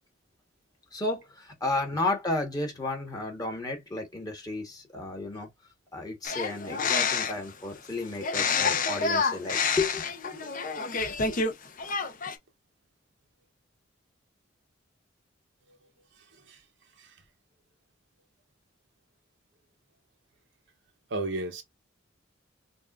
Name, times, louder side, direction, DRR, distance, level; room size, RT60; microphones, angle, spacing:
voice 1, 0.9-5.5 5.9-10.0, left 2 dB, 20° left, 1.3 m, -32 dB
sound 1, 6.2-7.5 8.2-11.5 11.8-12.4, left 5 dB, 45° left, 0.7 m, -28 dB
voice 2, 21.1-21.6, right 2 dB, 65° right, 0.9 m, -33 dB
5.2 x 2.5 x 2.4 m
head